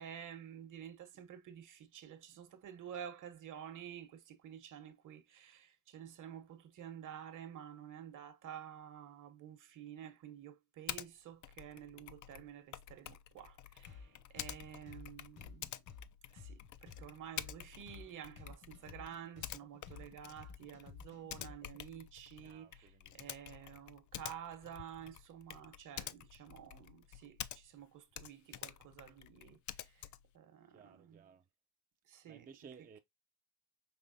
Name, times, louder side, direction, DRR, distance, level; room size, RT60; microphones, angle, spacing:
voice 1, 0.0-15.7 16.3-30.1 30.3-31.2 32.1-32.5, right 9 dB, 60° right, 1.1 m, -51 dB
Typing, 10.9-11.1 11.4-27.9 28.1-30.3, left 12 dB, 55° left, 0.5 m, -49 dB
sound 1, 13.9-21.8, left 6 dB, 80° left, 2.3 m, -53 dB
voice 2, 22.4-23.2 30.0-30.1 30.7-31.4 32.2-33.0, right 6 dB, 25° right, 0.4 m, -57 dB
5.4 x 3.0 x 2.6 m
cardioid pair, 105°, 36 cm